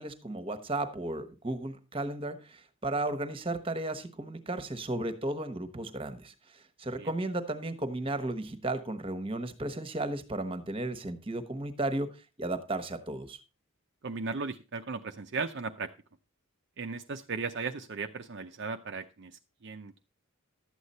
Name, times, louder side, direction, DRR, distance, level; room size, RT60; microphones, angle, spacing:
voice 1, 0.0-12.1 12.4-13.4, right 2 dB, 25° right, 10 dB, 1.1 m, -34 dB
voice 2, 14.0-15.9 16.8-20.0, right 4 dB, 50° right, 6 dB, 0.6 m, -36 dB
12.0 x 8.1 x 4.2 m, 0.31 s
head